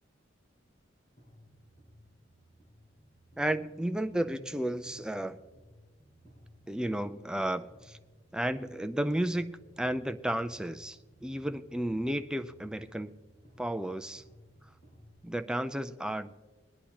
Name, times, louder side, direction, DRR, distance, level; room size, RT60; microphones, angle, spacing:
sound 1, 1.2-15.2, equal, 40° left, 4.3 m, -57 dB
voice 1, 3.4-5.4 6.7-8.0 8.3-13.1 13.6-14.2 15.2-16.3, right 1 dB, 5° right, 9 dB, 0.4 m, -33 dB
22.0 x 9.9 x 2.9 m, 1.2 s
head